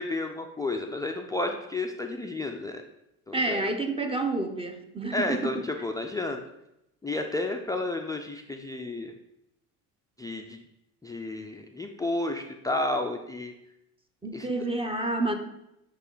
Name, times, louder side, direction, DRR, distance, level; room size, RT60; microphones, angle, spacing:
voice 1, 0.0-2.8 3.3-3.7 5.1-6.4 7.0-9.1 10.2-10.6 11.0-13.5 14.3-14.5, left 2 dB, 10° left, 4 dB, 0.3 m, -31 dB
voice 2, 3.3-5.5 14.2-15.3, right 2 dB, 15° right, 6 dB, 0.8 m, -29 dB
8.0 x 3.1 x 3.9 m, 0.83 s
supercardioid pair, 85°, 42 cm